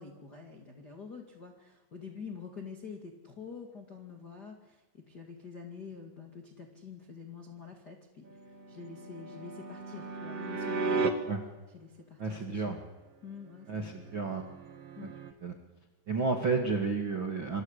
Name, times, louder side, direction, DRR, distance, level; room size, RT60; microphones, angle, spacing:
voice 1, 0.0-8.2 8.7-11.1 11.7-12.8 13.2-14.1 15.0-15.1, left 5 dB, 70° left, 0 dB, 0.9 m, -47 dB
sound 1, 8.3-11.1 14.0-15.3, right 4 dB, 60° right, 1.6 m, -35 dB
voice 2, 12.2-12.8 13.7-14.5 15.4-15.5 16.1-17.6, right 4 dB, 85° right, 3 dB, 1.0 m, -31 dB
27.0 x 24.5 x 8.2 m, 1.2 s
omnidirectional pair, 5.8 m